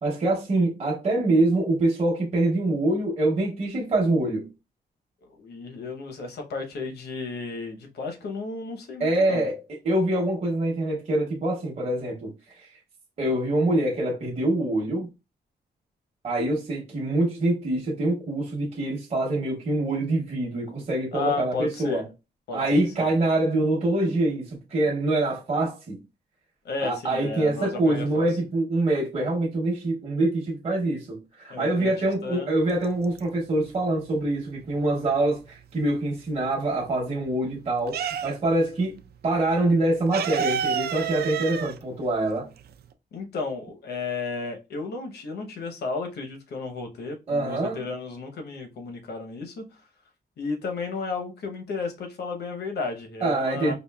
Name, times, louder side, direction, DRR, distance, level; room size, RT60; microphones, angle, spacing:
voice 1, 0.0-4.5 9.0-9.6 9.8-12.7 13.2-15.1 16.2-22.0 22.5-26.0 26.8-42.5 47.3-47.8 53.2-53.7, right 2 dB, 40° right, 0.9 m, -25 dB
voice 2, 5.2-9.5 21.1-22.1 22.5-22.6 23.0-23.1 26.6-28.3 31.5-31.9 32.2-32.5 43.1-49.8 50.4-53.7, left 4 dB, 75° left, 0.9 m, -33 dB
sound 1, 32.7-33.6 34.0-35.9 36.3-38.7 38.9-39.1 39.3-42.9, right 8 dB, 70° right, 0.4 m, -30 dB
4.9 x 2.5 x 2.3 m
wide cardioid pair, 150°, 17 cm